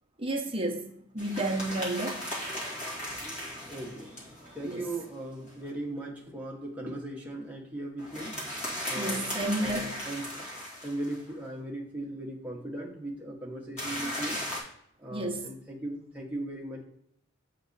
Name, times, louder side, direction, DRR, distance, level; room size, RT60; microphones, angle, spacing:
voice 1, 0.2-2.2 4.6-4.8 8.9-10.1 15.1-15.5, right 1 dB, 25° right, 0.8 m, -32 dB
sound 1, 1.2-5.5 8.0-11.3 13.8-14.6, equal, 35° left, 2.0 m, -37 dB
voice 2, 3.7-4.1 4.5-8.4 8.9-10.4 10.8-14.4 15.0-16.8, right 1 dB, 5° right, 1.0 m, -38 dB
7.6 x 3.0 x 4.0 m
head